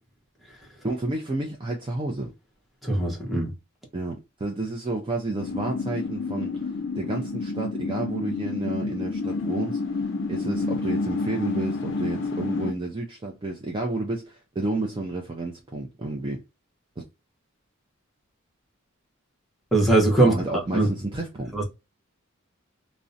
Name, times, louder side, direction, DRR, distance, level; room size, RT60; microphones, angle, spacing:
voice 1, 0.8-2.3 3.9-10.0 10.3-16.4 20.2-21.5, right 2 dB, 25° right, 0.4 m, -31 dB
voice 2, 2.8-3.5 19.7-20.9 21.5-21.6, right 2 dB, ahead, 0.8 m, -21 dB
sound 1, 5.4-12.7, left 3 dB, 60° left, 0.5 m, -29 dB
2.5 x 2.1 x 2.5 m
head